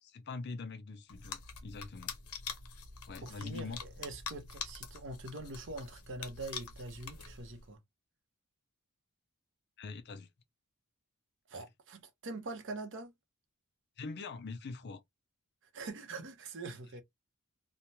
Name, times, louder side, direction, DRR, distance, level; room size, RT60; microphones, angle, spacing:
voice 1, 0.0-2.2 3.1-3.8 9.8-10.3 11.5-11.7 14.0-15.0, left 4 dB, 50° left, 0.5 m, -43 dB
sound 1, 1.1-7.7, left 6 dB, 80° left, 0.8 m, -45 dB
voice 2, 3.2-7.8 11.5-13.1 15.7-17.0, right 2 dB, 55° right, 0.7 m, -44 dB
3.2 x 2.2 x 2.7 m
head